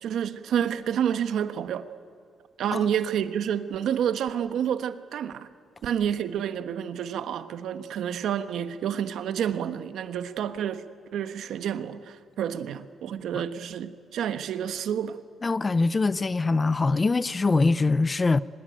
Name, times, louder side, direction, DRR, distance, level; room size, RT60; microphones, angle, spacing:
voice 1, 0.0-1.9 2.6-5.5 5.8-10.8 11.1-15.2, right 9 dB, 80° right, 1.2 m, -29 dB
voice 2, 15.4-18.4, left 3 dB, 25° left, 0.6 m, -23 dB
24.0 x 21.5 x 9.1 m
cardioid pair, 145°, 0 cm